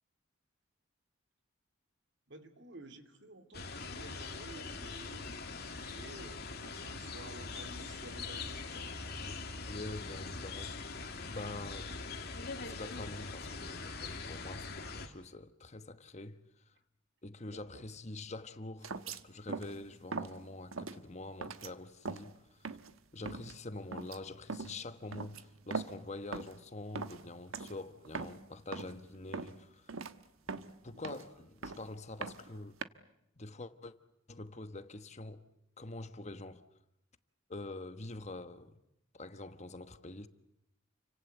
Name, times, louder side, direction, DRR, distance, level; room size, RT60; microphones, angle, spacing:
voice 1, 2.3-8.9 17.4-17.9, right 2 dB, 55° right, 2.9 m, -53 dB
sound 1, 3.5-15.1, left 4 dB, 50° left, 2.7 m, -42 dB
voice 2, 9.7-10.9 11.3-11.9 12.6-16.4 16.7-16.8 17.2-22.7 23.1-29.9 30.8-32.8 33.4-33.9 34.3-35.4 35.8-36.6 37.5-38.8 39.1-40.3, left 2 dB, 35° left, 1.1 m, -45 dB
sound 2, 18.8-19.2 19.5-19.8 20.1-20.4 20.7-21.0 21.4-21.7 22.0-22.3 22.6-22.9 23.3-23.5 23.9-24.2 24.5-24.8 25.1-26.0 26.3-26.6 26.9-27.3 27.5-27.8 28.0-28.4 28.7-29.0 29.3-29.6 29.9-30.1 30.5-31.3 31.6-31.9 32.2-32.8, right 4 dB, 85° right, 1.2 m, -41 dB
29.5 x 24.5 x 8.1 m
head